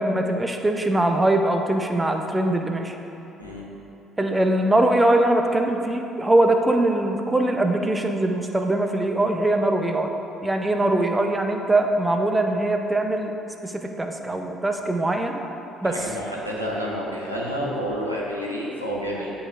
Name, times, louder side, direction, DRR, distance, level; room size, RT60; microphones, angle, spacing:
voice 1, 0.0-3.0 4.2-10.1 10.4-13.3 13.6-15.4 15.8-16.0, right 1 dB, 15° right, 4 dB, 0.5 m, -22 dB
voice 2, 15.8-19.3, equal, 90° right, -5 dB, 0.7 m, -29 dB
9.7 x 3.9 x 2.5 m, 2.9 s
figure-of-eight pair, 50°, 0 cm